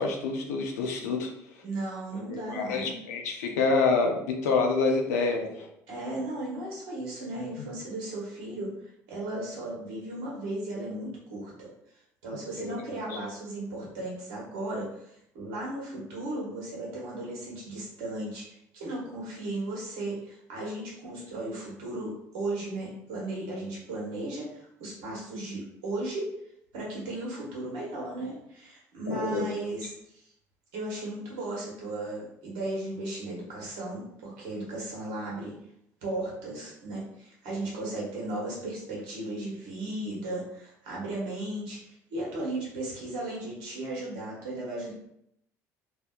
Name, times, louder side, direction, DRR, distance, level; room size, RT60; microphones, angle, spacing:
voice 1, 0.0-1.3 2.3-5.7 12.6-12.7 29.1-29.4, left 4 dB, 90° left, 2 dB, 0.4 m, -27 dB
voice 2, 1.6-2.9 5.9-8.7 9.1-11.7 12.2-15.0 15.3-26.3 26.7-30.2 30.7-35.5 36.0-44.9, right 2 dB, 75° right, -4 dB, 1.1 m, -36 dB
2.6 x 2.1 x 2.3 m, 0.74 s
hypercardioid pair, 70°, 8 cm